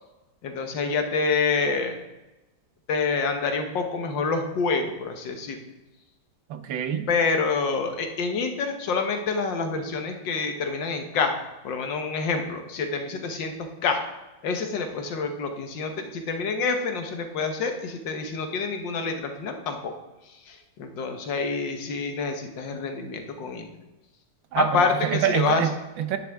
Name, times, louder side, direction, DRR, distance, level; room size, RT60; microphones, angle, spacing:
voice 1, 0.4-2.0 2.9-5.6 7.1-11.3 11.6-13.5 13.8-14.0 14.4-19.9 20.5-23.7 24.6-25.7, left 4 dB, 75° left, 5 dB, 1.8 m, -27 dB
voice 2, 6.5-7.1 24.5-26.2, right 9 dB, 85° right, 9 dB, 1.6 m, -26 dB
10.5 x 9.7 x 3.5 m, 1.1 s
omnidirectional pair, 2.0 m